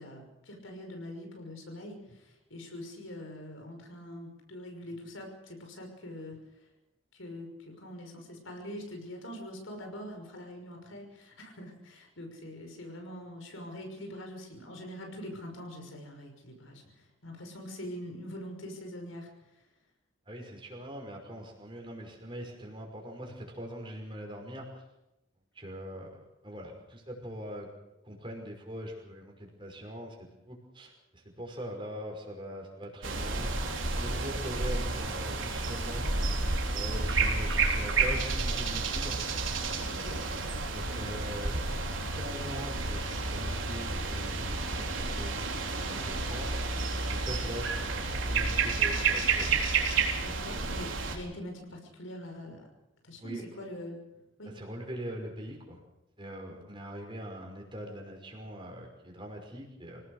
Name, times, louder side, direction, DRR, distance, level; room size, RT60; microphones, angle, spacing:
voice 1, 0.0-6.4 7.1-19.3 39.8-40.2 47.2-47.6 50.2-52.7 53.0-54.0 54.4-54.5, equal, 85° left, 3 dB, 5.8 m, -43 dB
voice 2, 20.3-24.8 25.5-27.7 28.0-33.5 33.9-36.2 36.7-39.2 40.7-41.6 42.1-49.5 53.2-53.4 54.5-55.8 56.2-60.0, equal, 25° right, 1 dB, 5.6 m, -42 dB
sound 1, 33.0-51.2, right 3 dB, 75° right, 3.9 m, -30 dB
27.0 x 18.0 x 6.6 m, 0.95 s
head